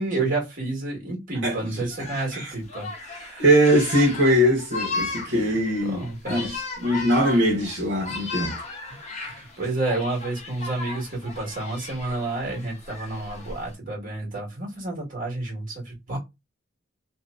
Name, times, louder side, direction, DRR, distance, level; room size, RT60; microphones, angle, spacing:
voice 1, 0.0-3.5 5.3-6.5 8.9-16.2, right 2 dB, 45° right, 1.3 m, -30 dB
voice 2, 1.4-1.9 2.3-2.5 3.4-8.5, equal, 60° right, 0.9 m, -21 dB
sound 1, 1.9-13.7, left 3 dB, 35° left, 0.8 m, -36 dB
2.7 x 2.0 x 2.3 m
head